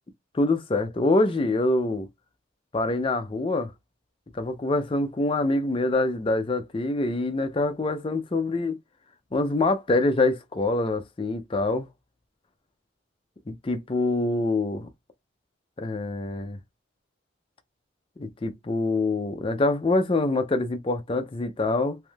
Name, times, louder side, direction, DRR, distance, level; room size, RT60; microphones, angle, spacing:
voice 1, 0.3-2.1 2.7-3.7 4.3-8.7 9.3-11.9 13.5-14.9 15.8-16.6 18.2-22.0, left 2 dB, 25° left, 0.4 m, -25 dB
3.3 x 2.6 x 2.2 m
head